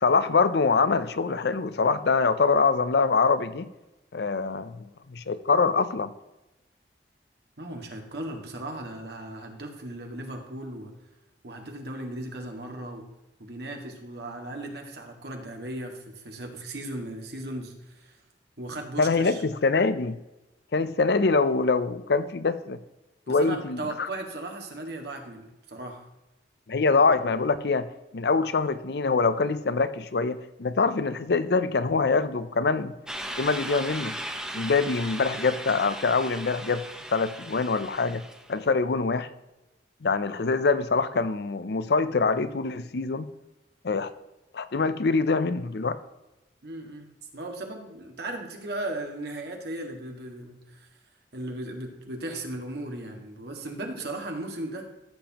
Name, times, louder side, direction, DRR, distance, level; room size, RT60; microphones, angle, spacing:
voice 1, 0.0-3.7 4.1-6.1 19.0-20.2 20.7-22.8 23.3-24.1 26.7-27.9 28.1-32.9 33.4-34.2 34.5-36.8 37.1-38.2 38.5-39.3 40.0-43.3 43.8-44.1 44.5-46.0, left 4 dB, 65° left, 13 dB, 0.6 m, -24 dB
voice 2, 7.6-10.9 11.4-13.1 13.4-18.2 18.6-19.4 23.3-26.0 46.6-50.9 51.3-54.9, right 1 dB, 65° right, 2 dB, 1.8 m, -37 dB
sound 1, 33.1-38.5, right 1 dB, 5° right, 0.9 m, -37 dB
14.5 x 6.9 x 2.9 m, 1.0 s
head